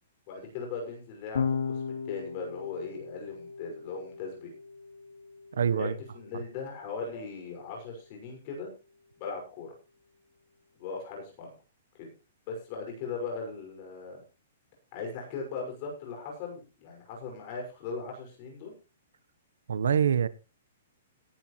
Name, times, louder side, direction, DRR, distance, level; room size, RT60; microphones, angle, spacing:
voice 1, 0.3-4.5 5.7-8.7 9.2-9.7 10.8-11.5 12.0-12.1 12.5-14.2 14.9-18.7, left 4 dB, 30° left, 5.8 m, -39 dB
Electric guitar / Bass guitar, 1.3-7.7, left 6 dB, 85° left, 2.2 m, -37 dB
voice 2, 5.5-5.9 19.7-20.3, right 7 dB, 90° right, 1.0 m, -25 dB
17.5 x 11.5 x 3.2 m
hypercardioid pair, 175°, 0 cm